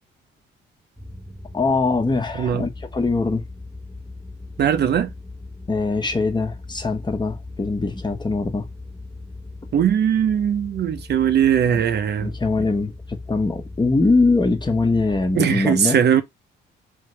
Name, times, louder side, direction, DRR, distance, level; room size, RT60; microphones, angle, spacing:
sound 1, 1.0-15.3, left 2 dB, 5° left, 1.6 m, -38 dB
voice 1, 1.5-3.4 5.7-8.6 11.7-11.8 12.2-16.0, left 3 dB, 20° left, 1.2 m, -22 dB
voice 2, 4.6-5.1 9.7-12.3 15.3-16.2, right 9 dB, 55° right, 0.8 m, -19 dB
3.9 x 3.5 x 3.2 m
cardioid pair, 90°, 20 cm